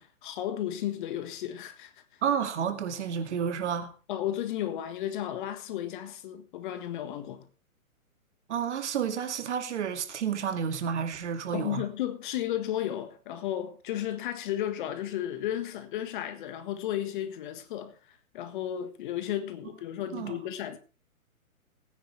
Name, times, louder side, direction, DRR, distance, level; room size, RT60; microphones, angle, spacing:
voice 1, 0.0-1.9 4.1-7.5 11.5-20.8, left 11 dB, 35° left, 1.6 m, -34 dB
voice 2, 2.2-3.9 8.5-11.8 20.1-20.4, right 7 dB, 50° right, 2.2 m, -30 dB
18.5 x 10.0 x 3.3 m
hypercardioid pair, 140°, 43 cm